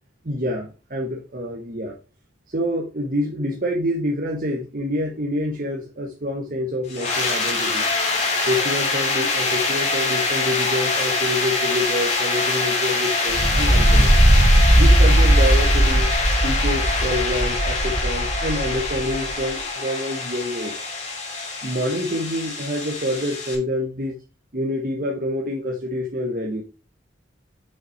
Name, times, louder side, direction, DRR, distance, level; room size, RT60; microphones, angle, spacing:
voice 1, 0.2-2.0 2.5-7.9 8.5-14.1 14.7-16.1 16.4-20.7 21.6-24.2 24.5-26.6, left 1 dB, 45° right, 0 dB, 1.1 m, -27 dB
sound 1, 6.9-23.6, left 3 dB, 35° left, 2.2 m, -24 dB
sound 2, 13.3-19.4, right 1 dB, 25° right, 0.8 m, -18 dB
6.1 x 5.6 x 4.3 m, 0.34 s
head